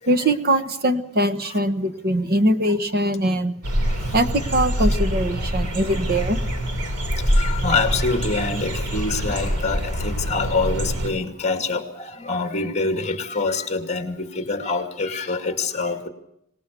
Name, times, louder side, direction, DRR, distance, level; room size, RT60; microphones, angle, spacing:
voice 1, 0.1-3.5 4.1-6.4, right 1 dB, 45° right, 9 dB, 1.3 m, -22 dB
sound 1, 3.6-11.1, equal, 85° right, 4.0 m, -25 dB
voice 2, 7.4-11.8 12.2-16.1, left 3 dB, 30° left, 6 dB, 2.4 m, -25 dB
25.0 x 19.5 x 6.9 m, 0.77 s
head